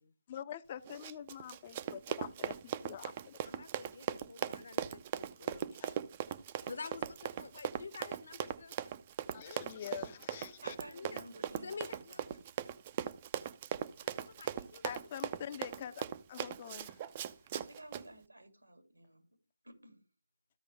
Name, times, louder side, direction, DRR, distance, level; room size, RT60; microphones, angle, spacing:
voice 1, 0.3-3.4 5.7-5.9 9.3-10.8 14.8-17.0, left 9 dB, 30° left, 0.6 m, -45 dB
Run, 0.9-18.0, right 10 dB, 25° right, 0.5 m, -39 dB
voice 2, 3.4-6.0 6.3-6.4 6.6-8.9 10.9-11.2 11.6-12.4 14.0-15.3, left 5 dB, 55° left, 1.1 m, -49 dB
voice 3, 10.6-12.3 17.5-19.2 19.6-20.0, right 1 dB, 90° right, 2.7 m, -53 dB
14.5 x 5.1 x 3.4 m
figure-of-eight pair, 155°, 0 cm